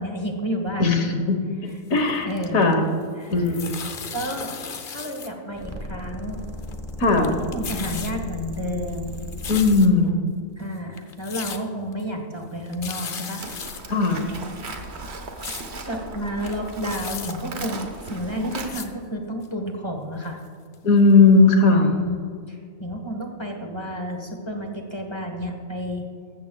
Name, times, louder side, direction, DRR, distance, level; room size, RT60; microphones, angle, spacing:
voice 1, 0.0-1.0 1.6-1.8 2.2-2.7 3.2-3.6 4.1-6.4 7.0-9.2 10.6-13.4 15.8-20.4 21.7-22.2 22.5-26.1, equal, 20° left, 3 dB, 1.2 m, -31 dB
voice 2, 0.8-1.4 1.9-2.3 2.5-2.8 3.3-3.7 7.0-7.3 9.5-10.2 13.9-14.2 20.8-21.9, left 3 dB, 75° left, 4 dB, 1.7 m, -17 dB
sound 1, 1.8-2.9 3.2-5.3 5.6-5.7 6.4-6.9 7.2-8.1 8.5-10.1 10.6-10.7 11.0-11.6 11.9-12.0 12.4-12.5 12.7-13.8 14.2-14.3 14.7-15.6 16.1-16.2 16.4-17.3 18.1-18.2 18.5-18.9 19.4-19.5 20.2-20.3 20.7-20.8 21.1-21.2, left 6 dB, 45° left, 0.8 m, -36 dB
sound 2, 5.5-9.8, left 1 dB, 10° right, 1.2 m, -36 dB
Livestock farm animals working animals, 13.4-18.7, right 3 dB, 50° right, 1.4 m, -36 dB
15.0 x 13.5 x 2.3 m, 2.2 s
omnidirectional pair, 1.4 m